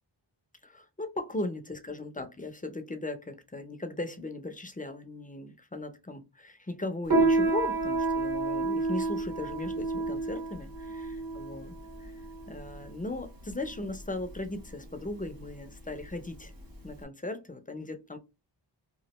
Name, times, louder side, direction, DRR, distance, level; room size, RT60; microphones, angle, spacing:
voice 1, 0.6-12.1 12.5-16.5 16.8-18.2, left 2 dB, 20° left, 0.5 m, -38 dB
Piano, 7.1-17.0, right 3 dB, 50° right, 1.2 m, -30 dB
3.0 x 2.5 x 2.9 m
wide cardioid pair, 65°, 44 cm